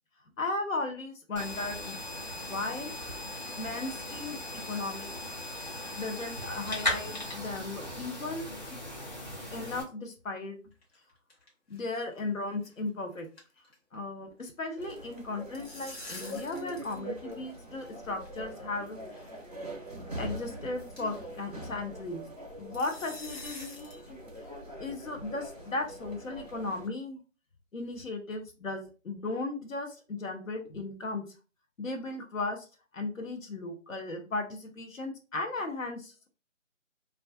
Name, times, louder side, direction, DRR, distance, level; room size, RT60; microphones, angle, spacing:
voice 1, 0.4-2.0 2.4-2.9 3.6-5.1 6.0-8.5 9.3-10.6 11.7-13.3 13.9-19.2 20.1-22.2 22.6-24.2 24.8-27.2 27.7-31.2 31.8-32.6 32.9-36.3, left 2 dB, 85° left, 6 dB, 0.8 m, -36 dB
sound 1, 1.4-9.8, left 1 dB, 35° left, 0.7 m, -38 dB
sound 2, 10.7-11.5 11.7-11.9 12.2-12.3 12.7-12.9 13.1-14.4 15.3-17.0 17.3-17.4 18.3-18.4 19.2-19.4 19.9-20.0 20.4-20.5 21.0-21.2 22.7-24.0, left 2 dB, 50° left, 1.0 m, -46 dB
sound 3, 14.8-26.9, right 1 dB, 30° right, 0.4 m, -43 dB
2.3 x 2.3 x 2.2 m, 0.35 s
figure-of-eight pair, 160°, 39 cm